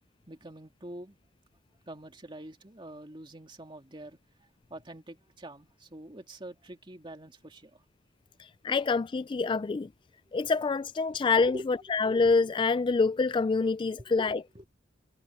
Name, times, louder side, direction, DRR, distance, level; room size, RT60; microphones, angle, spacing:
voice 1, 0.3-1.2 1.9-4.2 4.7-7.8 11.1-11.8 13.9-14.7, right 1 dB, 25° right, 2.3 m, -45 dB
voice 2, 8.6-9.9 10.3-14.4, left 4 dB, 25° left, 0.3 m, -26 dB
head